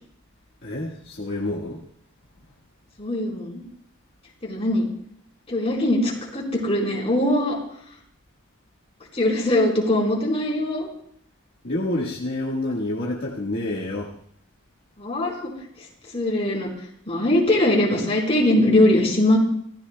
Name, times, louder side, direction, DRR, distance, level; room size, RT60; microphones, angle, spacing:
voice 1, 0.6-1.8 11.6-14.1, left 1 dB, 50° left, -3 dB, 1.7 m, -28 dB
voice 2, 3.0-3.6 4.4-4.9 5.5-7.6 9.1-10.9 15.0-15.5 16.1-16.7 17.1-19.4, left 1 dB, 30° left, -2 dB, 4.4 m, -21 dB
26.0 x 15.5 x 2.3 m, 0.67 s
head